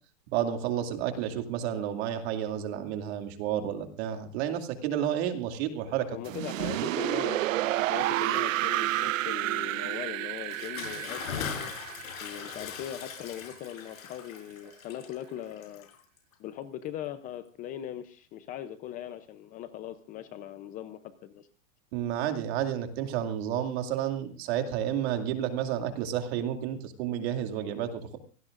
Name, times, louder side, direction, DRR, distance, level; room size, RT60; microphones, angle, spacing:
voice 1, 0.3-6.2 21.9-28.2, right 10 dB, 50° right, 6 dB, 2.5 m, -31 dB
voice 2, 6.1-7.5 7.9-11.7 12.2-15.9 16.4-21.5, left 11 dB, 20° left, 11 dB, 0.6 m, -40 dB
sound 1, 6.3-13.2, right 15 dB, 70° right, 0.8 m, -30 dB
Bathtub (filling or washing) / Splash splatter, 10.4-16.3, left 8 dB, 80° left, 5.5 m, -40 dB
25.5 x 18.5 x 2.5 m, 0.38 s
supercardioid pair, 160°, 41 cm